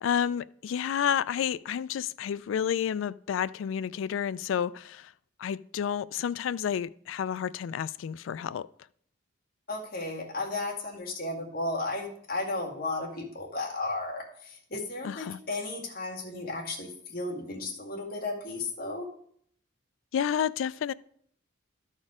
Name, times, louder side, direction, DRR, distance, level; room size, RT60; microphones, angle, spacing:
voice 1, 0.0-5.1 5.4-8.7 15.0-15.4 20.1-20.9, left 8 dB, 75° left, 0.3 m, -30 dB
voice 2, 9.7-19.1, left 2 dB, 45° left, 2.1 m, -34 dB
13.0 x 4.4 x 4.8 m
head